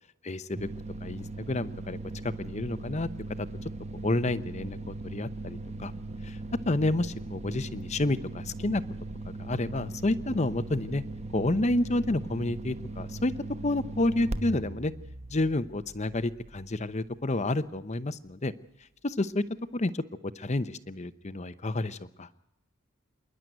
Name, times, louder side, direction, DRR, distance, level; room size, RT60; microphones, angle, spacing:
voice 1, 0.2-0.7 1.0-2.0 2.2-3.1 3.4-3.5 4.0-5.9 6.2-6.4 6.6-8.8 9.4-11.0 11.3-13.3 13.6-14.9 15.3-18.5 19.0-19.4 19.7-22.3, left 2 dB, 35° left, 13 dB, 0.8 m, -29 dB
sound 1, 0.5-16.9, right 2 dB, 35° right, 1.0 m, -39 dB
27.5 x 11.0 x 9.1 m, 0.89 s
head